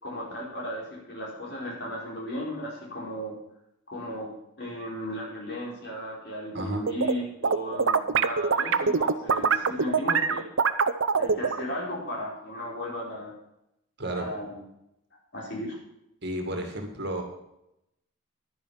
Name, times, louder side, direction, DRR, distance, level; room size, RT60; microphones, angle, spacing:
voice 1, 0.0-3.3 3.9-4.3 4.6-10.5 11.2-13.3 14.1-14.5 15.3-15.8, left 1 dB, 50° left, -3 dB, 4.7 m, -35 dB
sound 1, 6.6-7.1 7.4-11.6, right 5 dB, 70° right, 0.7 m, -23 dB
voice 2, 16.2-17.2, right 1 dB, 50° right, 3 dB, 2.1 m, -32 dB
11.0 x 10.5 x 5.8 m, 0.84 s
head